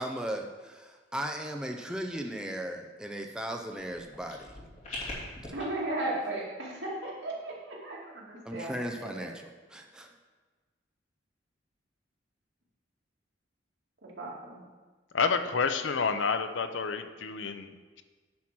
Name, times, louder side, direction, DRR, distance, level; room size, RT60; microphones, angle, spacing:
voice 1, 0.0-4.5 5.4-5.5 8.4-10.1, right 1 dB, 5° right, 3 dB, 0.5 m, -37 dB
sound 1, 3.7-5.6, left 2 dB, 40° left, 2.8 m, -42 dB
voice 2, 5.5-9.3 14.2-14.6, right 2 dB, 75° right, -4 dB, 2.4 m, -36 dB
voice 3, 15.1-18.0, left 5 dB, 90° left, 9 dB, 0.6 m, -29 dB
9.6 x 4.6 x 6.0 m, 1.4 s
head